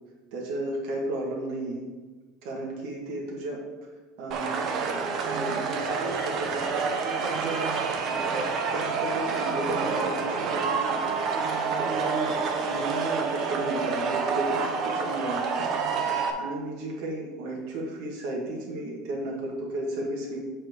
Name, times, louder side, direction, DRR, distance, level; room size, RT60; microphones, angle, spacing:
voice 1, 0.3-1.8 2.4-3.6 4.2-8.4 8.7-11.0 11.8-15.7 16.4-20.4, right 1 dB, 60° right, -3 dB, 1.9 m, -34 dB
sound 1, 4.3-16.3, right 5 dB, 35° right, 0.7 m, -28 dB
7.9 x 4.4 x 4.7 m, 1.3 s
cardioid pair, 165°, 0 cm